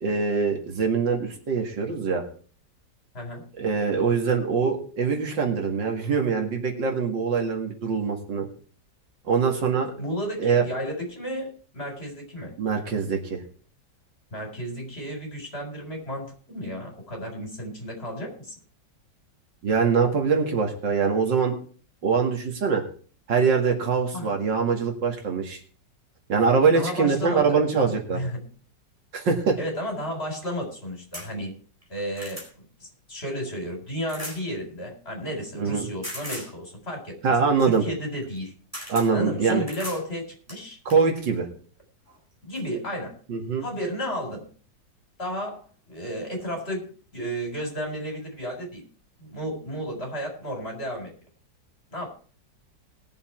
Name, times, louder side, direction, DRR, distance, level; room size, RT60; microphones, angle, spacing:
voice 1, 0.0-2.2 3.6-8.5 9.2-9.9 10.4-10.6 12.6-13.4 19.6-21.5 22.0-22.9 23.3-25.6 26.3-28.2 29.1-29.6 35.5-35.9 37.2-37.8 38.9-39.6 40.9-41.5 43.3-43.6, right 5 dB, 80° right, 2 dB, 2.7 m, -23 dB
voice 2, 10.0-12.5 14.3-18.5 24.1-24.3 26.7-27.6 28.1-28.5 29.6-31.6 31.9-32.4 32.8-37.2 37.6-38.5 39.1-40.8 42.4-43.2 43.6-44.5 45.2-48.8 49.2-51.1 51.9-52.1, equal, 35° left, 1 dB, 4.6 m, -33 dB
sound 1, 31.1-31.3 31.8-32.5 34.1-34.4 36.0-36.5 38.2-38.4 38.7-39.1 39.7-40.0 40.5-41.0 42.1-42.2 42.5-42.6, equal, 10° right, 4.2 m, -37 dB
20.0 x 7.0 x 4.4 m, 0.42 s
omnidirectional pair, 1.9 m